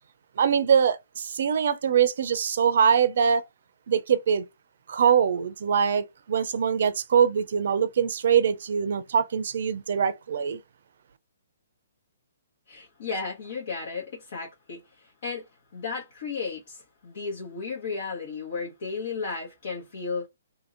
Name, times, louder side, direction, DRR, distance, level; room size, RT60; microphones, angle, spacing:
voice 1, 0.4-3.4 3.9-4.4 4.9-10.6, right 7 dB, 60° right, 0.5 m, -23 dB
voice 2, 12.7-15.4 15.7-20.3, left 4 dB, 60° left, 1.1 m, -34 dB
2.8 x 2.8 x 2.5 m
figure-of-eight pair, 130°, 0 cm